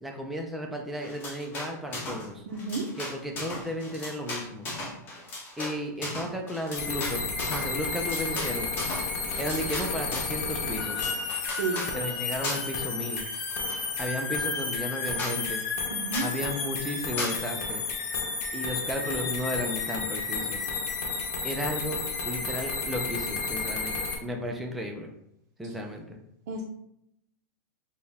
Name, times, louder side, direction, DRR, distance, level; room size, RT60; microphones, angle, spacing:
voice 1, 0.0-2.5 3.0-4.7 5.6-8.7 9.4-11.0 11.9-13.3 14.0-15.6 16.2-17.8 18.5-20.7 21.4-25.1 25.6-26.2, equal, ahead, 1 dB, 0.3 m, -34 dB
sound 1, 1.0-2.3 2.5-10.4 10.8-11.9 12.4-12.8 13.1-14.1 14.5-14.6 14.9-15.0 15.2-15.4 16.1-16.4 17.2-17.4, left 2 dB, 20° left, 0.8 m, -36 dB
voice 2, 2.5-3.0 11.5-11.9 15.9-16.3 25.6-25.7 26.5-26.6, right 4 dB, 60° right, -1 dB, 0.6 m, -32 dB
sound 2, 6.7-24.2, left 4 dB, 65° left, 0.9 m, -32 dB
4.3 x 2.2 x 3.4 m, 0.78 s
supercardioid pair, 160°, 10 cm